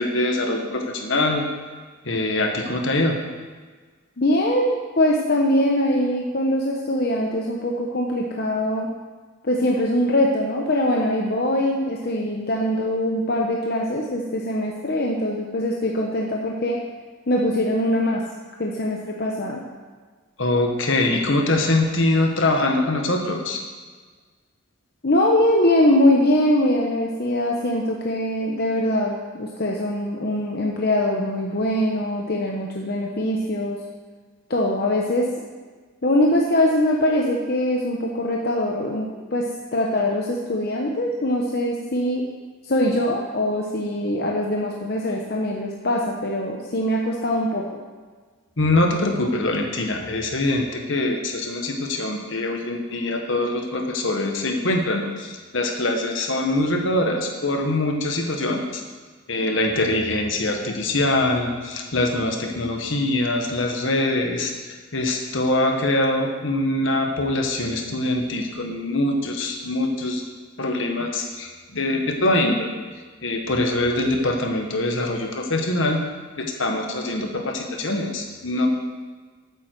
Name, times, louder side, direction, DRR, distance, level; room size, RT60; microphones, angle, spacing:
voice 1, 0.0-1.5 2.0-3.2 20.4-23.6 48.6-58.8 59.3-70.3 70.6-72.7 73.2-76.0 76.4-78.7, left 2 dB, 65° left, 3 dB, 1.5 m, -23 dB
voice 2, 4.2-8.9 9.4-16.8 17.3-18.2 18.6-19.6 25.0-33.8 34.5-35.3 36.0-42.2 42.6-47.7, left 1 dB, 50° left, 0 dB, 0.9 m, -22 dB
13.0 x 8.6 x 4.6 m, 1.4 s
head